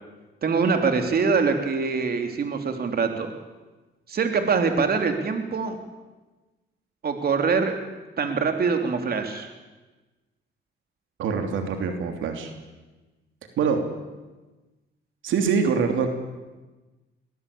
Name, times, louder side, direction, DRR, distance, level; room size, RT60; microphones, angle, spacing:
voice 1, 0.4-3.3 4.1-5.8 7.0-7.8 8.2-9.5, right 5 dB, 50° right, 6 dB, 3.2 m, -24 dB
voice 2, 11.2-12.5 13.6-13.8 15.2-16.1, right 6 dB, 80° right, 5 dB, 3.1 m, -24 dB
22.0 x 19.5 x 8.6 m, 1.2 s
cardioid pair, 90°, 20 cm